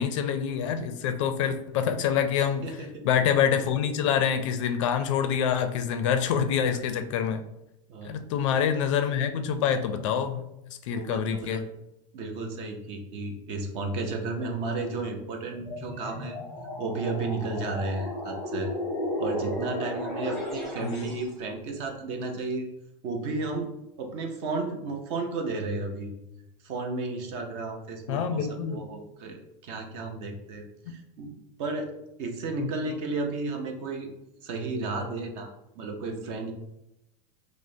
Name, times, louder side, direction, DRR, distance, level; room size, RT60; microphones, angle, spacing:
voice 1, 0.0-2.8 3.0-7.4 8.0-10.4 10.9-11.6 20.8-21.1 28.1-28.8 32.6-32.8, left 8 dB, 60° left, 9 dB, 0.4 m, -26 dB
voice 2, 2.6-3.1 6.3-6.4 7.9-8.2 10.9-11.6 12.1-16.3 16.8-18.7 19.2-22.7 23.0-23.7 24.0-26.1 26.6-31.9 32.2-34.1 34.4-36.5, right 3 dB, 35° right, 3 dB, 0.5 m, -33 dB
sound 1, 15.5-21.3, left 1 dB, ahead, 0.8 m, -34 dB
5.0 x 2.0 x 2.6 m, 0.87 s
supercardioid pair, 175°, 18 cm